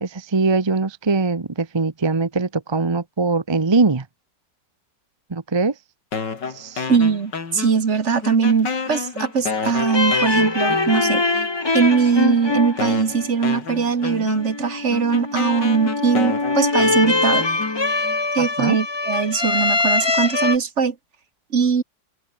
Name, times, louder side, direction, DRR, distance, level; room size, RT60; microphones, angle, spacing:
voice 1, 0.0-4.0 5.3-5.7 6.5-6.9 18.4-18.8, right 3 dB, 25° right, 0.6 m, -21 dB
sound 1, 6.1-8.0 8.2-11.5 12.2-12.3 12.8-18.2, left 5 dB, 70° left, 3.3 m, -30 dB
voice 2, 6.9-11.5 11.7-17.5 18.3-20.9 21.5-21.8, right 6 dB, 45° right, 1.6 m, -21 dB
sound 2, 9.8-20.6, left 3 dB, 15° left, 1.0 m, -23 dB
omnidirectional pair, 1.9 m